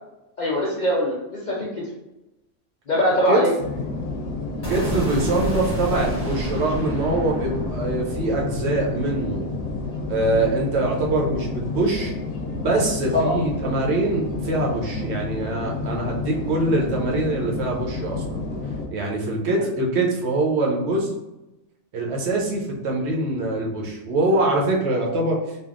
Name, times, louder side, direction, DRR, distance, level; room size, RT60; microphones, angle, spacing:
voice 1, 0.4-1.8 2.9-3.5 13.1-13.3, equal, 55° left, -5 dB, 0.5 m, -22 dB
sound 1, 3.6-18.9, left 3 dB, 85° left, 1.0 m, -30 dB
sound 2, 4.6-10.7, right 1 dB, 20° left, 1.1 m, -31 dB
voice 2, 4.7-9.5 10.1-12.1 12.6-18.4 18.9-21.1 21.9-25.6, right 2 dB, 65° right, -1 dB, 0.8 m, -23 dB
3.4 x 2.4 x 2.4 m, 0.95 s
omnidirectional pair, 1.3 m